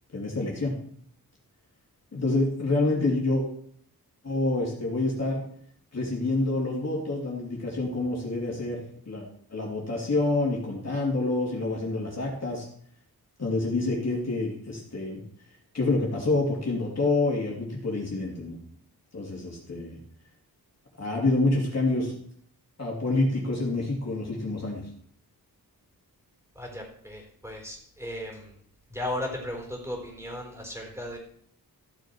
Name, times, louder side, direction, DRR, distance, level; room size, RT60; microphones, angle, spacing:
voice 1, 0.1-0.7 2.1-3.4 4.2-5.4 5.9-8.8 9.1-9.2 9.5-12.7 13.4-15.2 15.7-18.6 19.1-20.0 21.0-22.1 22.8-24.9, left 2 dB, 45° left, -2 dB, 3.1 m, -27 dB
voice 2, 26.5-28.5 28.9-31.2, left 1 dB, 10° right, -1 dB, 4.3 m, -36 dB
14.5 x 7.1 x 4.7 m, 0.62 s
wide cardioid pair, 100°, 37 cm